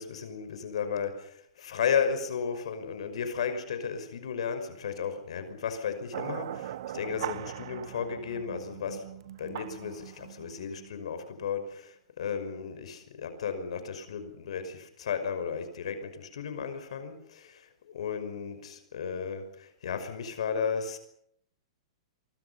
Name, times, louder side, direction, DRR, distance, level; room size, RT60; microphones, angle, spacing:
voice 1, 0.0-9.1 9.4-21.0, left 6 dB, 75° left, 10 dB, 5.7 m, -34 dB
sound 1, 6.1-11.4, right 12 dB, 50° right, 1.0 m, -40 dB
27.0 x 24.0 x 5.7 m, 0.69 s
hypercardioid pair, 170°, 3 cm